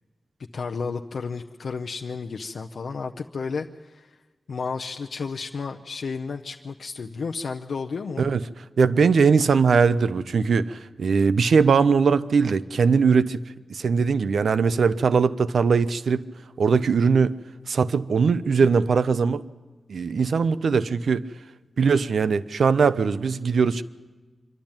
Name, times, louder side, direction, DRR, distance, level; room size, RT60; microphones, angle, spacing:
voice 1, 0.5-4.1 4.5-8.3, left 5 dB, 70° left, 4 dB, 0.6 m, -32 dB
voice 2, 8.8-13.4 13.7-16.3 16.6-17.4 17.7-19.4 19.9-21.3 21.8-23.8, right 5 dB, 80° right, 15 dB, 0.6 m, -20 dB
25.5 x 12.0 x 8.9 m, 1.3 s
wide cardioid pair, 160°, 0 cm